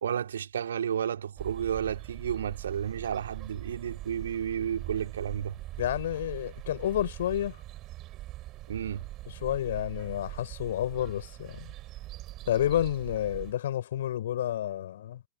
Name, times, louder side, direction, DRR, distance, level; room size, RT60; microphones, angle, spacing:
voice 1, 0.0-5.6 8.7-9.0, right 8 dB, 65° right, 2.5 m, -32 dB
sound 1, 1.4-13.5, right 16 dB, 35° right, 5.5 m, -42 dB
voice 2, 5.8-7.6 9.3-11.7 12.5-15.2, left 11 dB, 60° left, 3.7 m, -30 dB
figure-of-eight pair, 90°, 0 cm